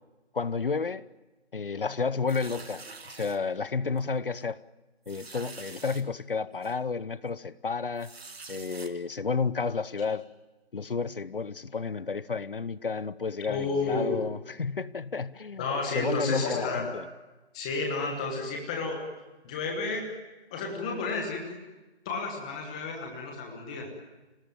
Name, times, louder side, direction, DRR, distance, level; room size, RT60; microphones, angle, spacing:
voice 1, 0.3-1.1 1.5-4.6 5.1-8.1 8.5-10.3 10.7-15.7 15.9-17.1, left 5 dB, 55° left, 0.9 m, -31 dB
sound 1, 2.3-3.4 4.0-4.1 4.4-4.5 5.1-6.0 6.6-6.7 8.0-8.9, right 4 dB, 65° right, 2.2 m, -46 dB
voice 2, 13.5-14.2 15.6-16.9 17.5-19.0 19.4-20.1 20.5-21.6 22.0-23.9, left 3 dB, 5° left, 1.3 m, -31 dB
26.5 x 18.0 x 9.1 m
figure-of-eight pair, 165°, 33 cm